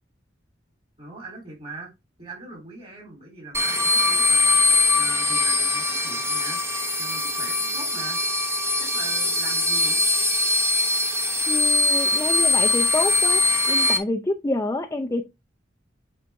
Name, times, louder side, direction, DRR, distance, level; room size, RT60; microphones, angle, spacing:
voice 1, 1.0-1.9 2.2-6.6 7.0-8.2 8.8-10.0, right 3 dB, 30° right, 3.4 m, -40 dB
sound 1, 3.5-14.0, left 2 dB, 15° right, 0.9 m, -22 dB
voice 2, 11.5-13.4 13.7-15.2, left 2 dB, 15° left, 0.5 m, -27 dB
8.1 x 4.0 x 3.5 m
head